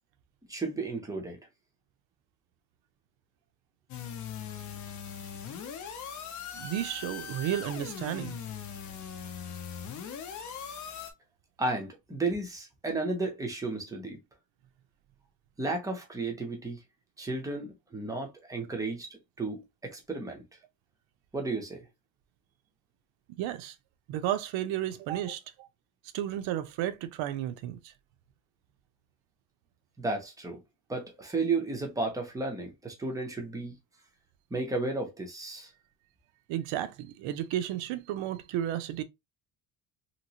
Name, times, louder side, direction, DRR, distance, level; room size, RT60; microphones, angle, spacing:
voice 1, 0.5-1.4 11.6-14.2 15.6-16.8 17.2-19.1 19.4-20.4 21.3-21.9 30.0-30.6 30.9-33.7 34.5-35.7, right 3 dB, 10° right, 0.5 m, -33 dB
sound 1, 3.9-11.1, left 7 dB, 40° left, 0.6 m, -40 dB
voice 2, 6.5-8.4 23.4-23.8 24.1-25.7 26.1-27.9 36.5-39.0, right 12 dB, 75° right, 0.7 m, -33 dB
2.9 x 2.9 x 2.8 m
cardioid pair, 180°, 46 cm